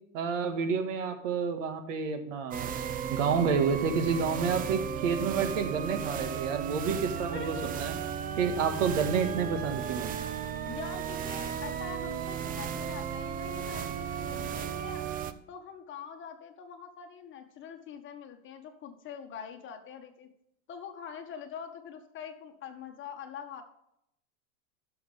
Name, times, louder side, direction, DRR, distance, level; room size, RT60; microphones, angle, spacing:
voice 1, 0.1-2.7 3.1-8.0 8.4-10.1, right 6 dB, 75° right, 8 dB, 1.8 m, -29 dB
sound 1, 2.5-15.3, right 8 dB, 20° right, 0.5 m, -35 dB
voice 2, 7.2-7.8 10.7-15.0 15.5-20.3 20.7-23.6, left 7 dB, 30° left, 5 dB, 1.6 m, -44 dB
16.0 x 6.8 x 3.5 m, 0.79 s
supercardioid pair, 135°, 38 cm